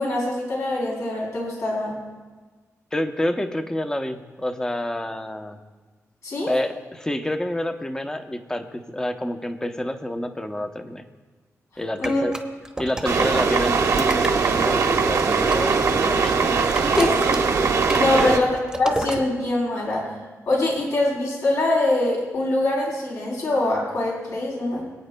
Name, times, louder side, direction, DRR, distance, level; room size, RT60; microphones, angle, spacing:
voice 1, 0.0-1.9 6.2-6.5 12.0-12.2 16.9-17.4 18.0-18.5 18.8-20.1 20.5-24.9, left 2 dB, 65° left, -3 dB, 3.3 m, -23 dB
voice 2, 2.9-5.6 6.5-11.0 11.8-12.4 12.8-17.1 18.1-18.4, left 1 dB, 10° left, 7 dB, 0.7 m, -28 dB
sound 1, 12.0-13.4 13.8-15.9 16.2-19.2, right 2 dB, 10° right, 0.9 m, -32 dB
sound 2, 13.0-18.4, right 5 dB, 75° right, 1.0 m, -21 dB
25.5 x 9.1 x 2.2 m, 1.4 s
wide cardioid pair, 135°, 6 cm